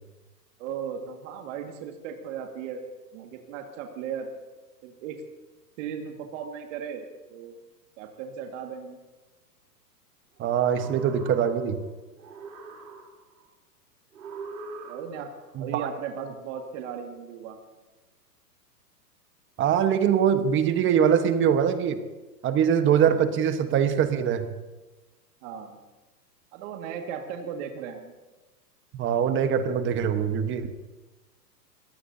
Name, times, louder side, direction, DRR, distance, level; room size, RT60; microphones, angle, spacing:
voice 1, 0.6-2.8 3.1-4.3 4.8-5.2 5.8-7.5 8.0-9.0 14.8-15.3 15.6-17.6 25.4-25.8 26.5-28.1, right 7 dB, 50° right, 3 dB, 2.0 m, -36 dB
voice 2, 10.4-11.8 15.5-15.9 19.6-22.0 22.4-24.5 28.9-30.7, right 8 dB, 25° right, 9 dB, 1.3 m, -23 dB
sound 1, 10.4-11.8 12.2-13.4 14.1-15.4, right 4 dB, 85° right, 3.7 m, -43 dB
24.0 x 17.5 x 2.8 m, 1.1 s
hypercardioid pair, 125°, 49 cm